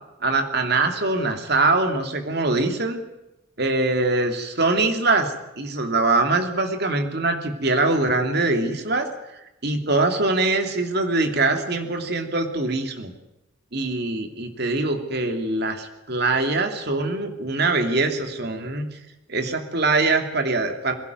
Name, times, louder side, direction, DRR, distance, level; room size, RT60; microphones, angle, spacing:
voice 1, 0.2-3.0 3.6-9.1 9.6-13.1 13.7-18.9 19.3-20.9, right 3 dB, 50° right, 5 dB, 2.7 m, -23 dB
22.0 x 17.5 x 9.5 m, 0.92 s
head